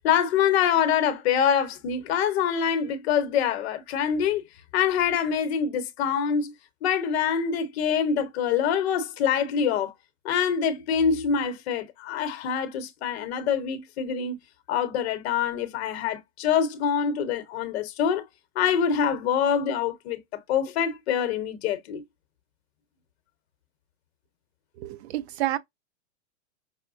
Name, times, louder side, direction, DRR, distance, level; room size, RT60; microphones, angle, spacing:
voice 1, 0.0-4.4 4.7-6.5 6.8-9.9 10.2-14.4 14.7-18.3 18.5-20.2 20.5-22.0, left 7 dB, 55° left, 0.9 m, -25 dB
voice 2, 24.7-25.6, right 14 dB, 55° right, 0.5 m, -29 dB
5.5 x 2.1 x 2.5 m
hypercardioid pair, 140°, 39 cm